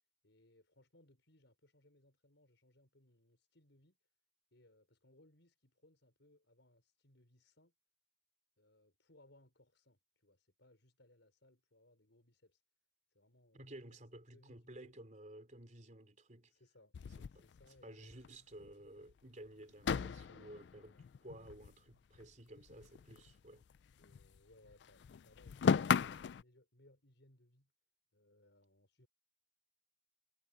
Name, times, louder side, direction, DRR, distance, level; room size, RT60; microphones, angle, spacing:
voice 1, 0.2-4.1 4.5-7.7 8.6-12.6 13.1-13.7 14.3-15.0 16.5-16.9 17.3-18.3 23.8-27.7 28.1-29.1, left 1 dB, 80° left, 5.5 m, -68 dB
voice 2, 13.5-16.5 17.3-17.4 17.8-23.6, right 1 dB, 40° right, 3.9 m, -54 dB
sound 1, 16.9-18.3 18.6-18.7 19.0-19.1 19.8-22.3 22.6-24.4 24.7-26.4, left 6 dB, 65° left, 0.4 m, -37 dB
head